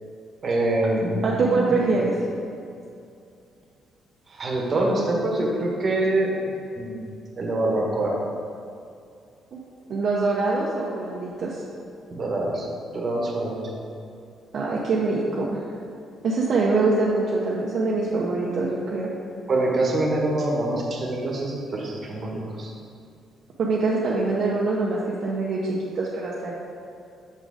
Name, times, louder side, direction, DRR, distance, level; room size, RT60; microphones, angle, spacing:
voice 1, 0.4-1.8 4.3-6.3 6.8-7.0 7.4-8.1 12.1-12.7 12.9-13.6 19.5-22.7, right 2 dB, 45° right, -1 dB, 1.4 m, -25 dB
voice 2, 1.2-2.1 9.5-9.6 9.9-11.6 14.5-15.6 16.2-19.1 23.6-26.5, right 3 dB, 60° right, -4 dB, 0.8 m, -24 dB
6.4 x 3.9 x 4.9 m, 2.5 s
cardioid pair, 90°, 0 cm